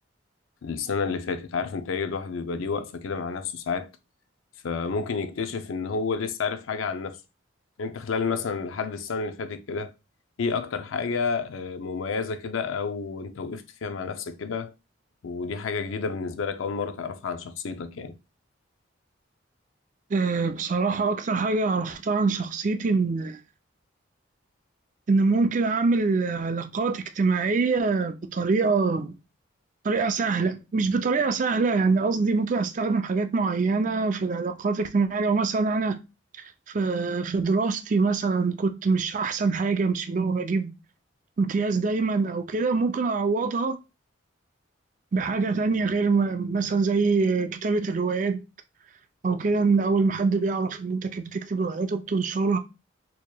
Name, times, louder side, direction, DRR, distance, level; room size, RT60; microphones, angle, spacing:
voice 1, 0.6-3.9 4.6-7.2 7.8-9.9 10.4-14.7 15.2-18.2, left 5 dB, 80° left, 0.5 m, -30 dB
voice 2, 20.1-23.4 25.1-29.2 29.8-36.0 36.7-40.8 41.4-43.8 45.1-48.4 49.2-52.6, right 4 dB, 40° right, 0.4 m, -24 dB
4.5 x 2.8 x 2.2 m
head